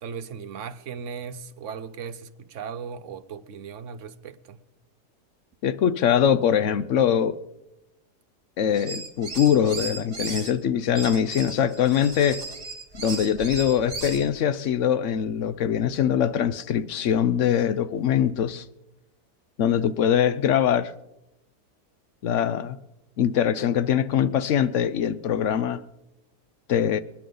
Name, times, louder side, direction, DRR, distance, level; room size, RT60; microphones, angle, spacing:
voice 1, 0.0-4.6, right 6 dB, 60° right, 1.0 m, -37 dB
voice 2, 5.6-7.4 8.6-12.4 13.0-18.6 19.6-20.9 22.2-22.8 23.2-25.8 26.7-27.0, left 9 dB, 60° left, 0.8 m, -22 dB
sound 1, 8.7-10.5 10.9-14.3, right 3 dB, 35° right, 2.0 m, -36 dB
26.0 x 10.5 x 3.9 m
omnidirectional pair, 1.7 m